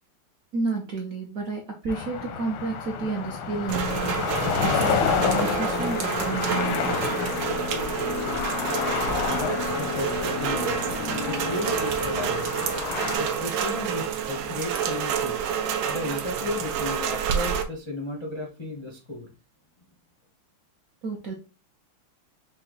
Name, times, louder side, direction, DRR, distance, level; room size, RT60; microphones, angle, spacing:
voice 1, 0.5-4.2 4.6-7.3 21.0-21.3, right 3 dB, 65° right, 1 dB, 0.8 m, -31 dB
sound 1, 1.9-13.2, left 6 dB, 85° left, 1.5 m, -29 dB
Rain, 3.7-17.6, right 7 dB, 80° right, 1.5 m, -29 dB
sound 2, 4.9-13.3, left 4 dB, 65° left, 0.7 m, -35 dB
voice 2, 9.3-12.5 13.2-15.4 15.9-19.3, left 2 dB, 45° left, -1 dB, 0.3 m, -34 dB
5.4 x 2.3 x 3.9 m, 0.32 s
omnidirectional pair, 2.3 m